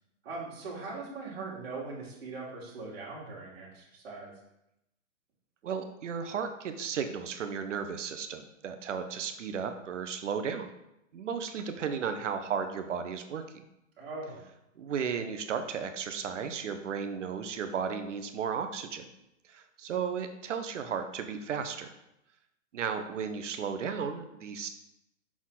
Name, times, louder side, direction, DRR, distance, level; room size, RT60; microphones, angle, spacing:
voice 1, 0.2-4.3 14.0-14.4, right 3 dB, 50° right, -4 dB, 2.2 m, -40 dB
voice 2, 5.6-10.7 11.1-13.6 14.8-19.1 19.5-21.9 22.7-24.7, right 6 dB, 70° right, 8 dB, 0.8 m, -34 dB
5.9 x 4.3 x 3.9 m, 0.85 s
hypercardioid pair, 175°, 38 cm